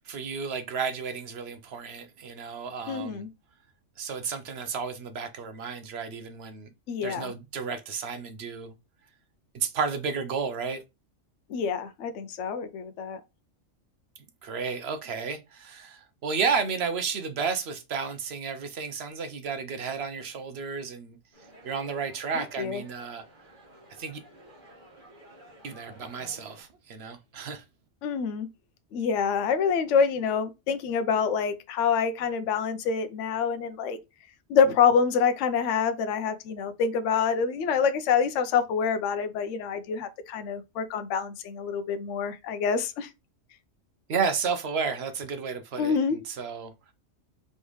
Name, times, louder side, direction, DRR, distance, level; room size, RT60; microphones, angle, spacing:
voice 1, 0.1-3.3 4.0-6.7 7.0-8.7 9.5-10.8 14.2-21.2 21.6-23.2 24.0-24.2 25.6-27.6 44.1-46.7, right 5 dB, 60° right, 0.8 m, -32 dB
voice 2, 2.9-3.3 6.9-7.3 11.5-13.2 22.4-22.8 28.0-28.5 28.9-34.0 34.5-43.1 45.8-46.2, left 6 dB, 70° left, 0.9 m, -26 dB
sound 1, 21.3-26.6, right 1 dB, 40° right, 2.0 m, -52 dB
4.2 x 3.5 x 3.1 m
omnidirectional pair, 1.3 m